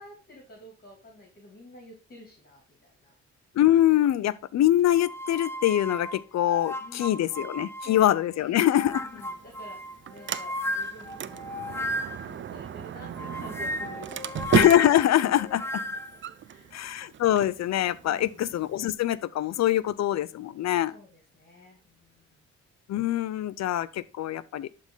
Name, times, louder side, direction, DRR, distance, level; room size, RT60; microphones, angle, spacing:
voice 1, 0.0-3.1 6.8-7.3 7.8-14.3 15.4-15.8 16.1-16.8 18.0-18.4 20.9-22.4, left 1 dB, 30° left, 2.6 m, -50 dB
voice 2, 3.5-9.1 14.5-15.8 16.7-20.9 22.9-24.7, left 12 dB, 60° left, 0.6 m, -24 dB
sound 1, 4.9-8.2 8.6-12.4 13.2-16.2, left 1 dB, 10° left, 0.7 m, -35 dB
Sliding door, 9.0-18.9, right 9 dB, 40° right, 0.5 m, -35 dB
11.5 x 3.9 x 3.7 m
cardioid pair, 90°, 30 cm